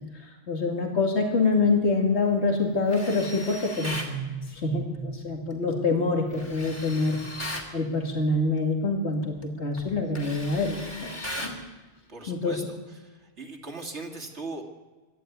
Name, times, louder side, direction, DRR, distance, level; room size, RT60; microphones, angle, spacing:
voice 1, 0.0-7.2 7.7-11.6 12.3-12.6, left 3 dB, 70° left, 2 dB, 2.6 m, -26 dB
Tools, 2.9-4.2 6.3-7.7 9.2-9.4 9.8-11.6, left 1 dB, 25° left, 2.8 m, -37 dB
voice 2, 12.1-12.6 13.0-14.6, right 3 dB, 75° right, 2 dB, 2.9 m, -39 dB
24.5 x 12.0 x 9.4 m, 1.3 s
omnidirectional pair, 1.2 m